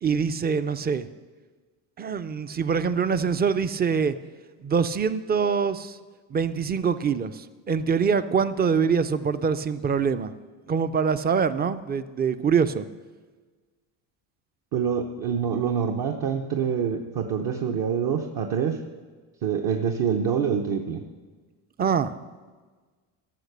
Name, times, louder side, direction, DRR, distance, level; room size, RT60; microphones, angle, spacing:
voice 1, 0.0-1.1 2.0-4.2 4.6-6.0 6.3-10.3 10.7-12.9 21.8-22.1, right 6 dB, 25° right, 13 dB, 0.4 m, -24 dB
voice 2, 14.7-18.8 19.4-21.0, right 7 dB, 55° right, 3 dB, 0.9 m, -26 dB
13.5 x 5.9 x 6.7 m, 1.4 s
cardioid pair, 100°, 43 cm